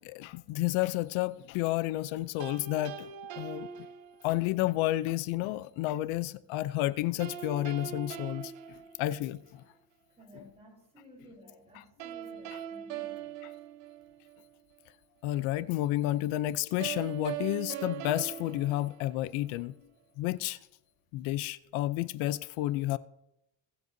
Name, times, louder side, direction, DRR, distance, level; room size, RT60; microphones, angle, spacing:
voice 1, 0.0-3.9 4.2-8.5 9.0-9.6 10.3-10.4 11.7-11.8 12.5-12.6 13.4-13.5 15.2-19.7 20.2-20.6 21.1-23.0, left 15 dB, 85° left, 0.6 m, -31 dB
sound 1, 2.4-4.6 7.2-9.6 12.0-14.5 16.8-19.6, right 10 dB, 75° right, 0.9 m, -41 dB
voice 2, 10.2-13.3, equal, 15° right, 3.5 m, -55 dB
21.5 x 7.8 x 2.7 m
cardioid pair, 130°, 46 cm